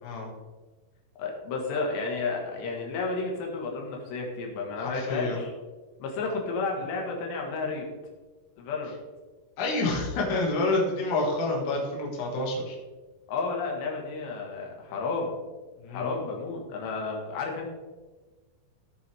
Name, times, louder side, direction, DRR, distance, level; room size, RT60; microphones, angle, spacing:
voice 1, 1.2-5.5 6.0-7.9 8.6-9.0 13.3-15.3 15.9-17.7, left 4 dB, 85° left, 0 dB, 3.8 m, -32 dB
voice 2, 4.8-5.4 9.6-12.8 15.8-16.1, left 2 dB, 50° left, -2 dB, 3.1 m, -28 dB
16.0 x 7.0 x 3.5 m, 1.3 s
omnidirectional pair, 4.9 m